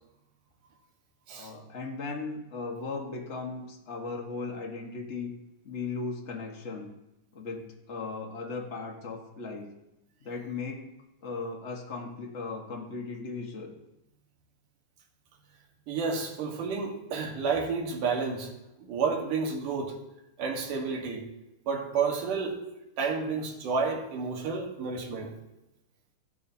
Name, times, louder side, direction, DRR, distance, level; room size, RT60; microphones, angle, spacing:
voice 1, 1.3-5.3 5.6-6.9 7.3-9.7 10.2-10.8 11.2-13.7, left 4 dB, 35° left, 1 dB, 1.1 m, -37 dB
voice 2, 15.9-18.5 18.8-19.9 20.4-21.3 21.7-22.6 23.0-25.3, right 5 dB, 85° right, 0 dB, 3.2 m, -30 dB
15.0 x 11.5 x 2.8 m, 0.90 s
omnidirectional pair, 3.6 m